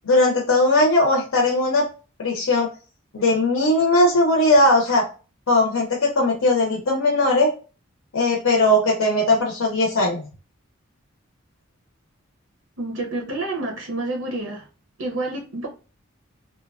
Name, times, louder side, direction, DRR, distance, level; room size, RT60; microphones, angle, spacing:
voice 1, 0.0-1.9 2.2-2.7 3.1-5.0 5.5-7.5 8.1-10.2, left 2 dB, 90° left, 0.6 m, -19 dB
voice 2, 12.8-14.7 15.0-15.7, right 2 dB, 85° right, 0.6 m, -28 dB
2.9 x 2.1 x 2.3 m
head